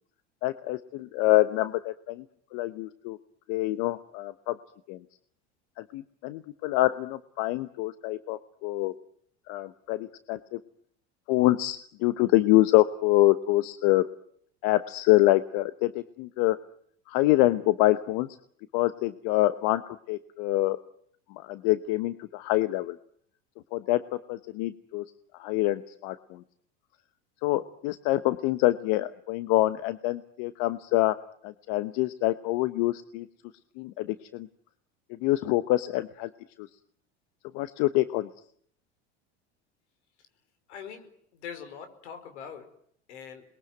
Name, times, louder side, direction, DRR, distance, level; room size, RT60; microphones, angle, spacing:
voice 1, 0.4-2.2 2.5-3.2 3.5-4.6 4.9-5.0 5.8-8.9 9.5-10.6 11.3-14.1 14.6-16.6 17.1-18.3 18.7-20.8 21.3-23.0 23.7-25.0 25.3-26.4 27.4-31.1 31.4-33.3 33.8-34.5 35.2-36.3 36.6-36.7 37.5-38.3, left 17 dB, 65° left, 13 dB, 1.1 m, -26 dB
voice 2, 40.7-42.7 43.1-43.4, left 7 dB, 80° left, 8 dB, 5.0 m, -42 dB
27.5 x 21.5 x 9.3 m, 0.68 s
hypercardioid pair, 90°, 34 cm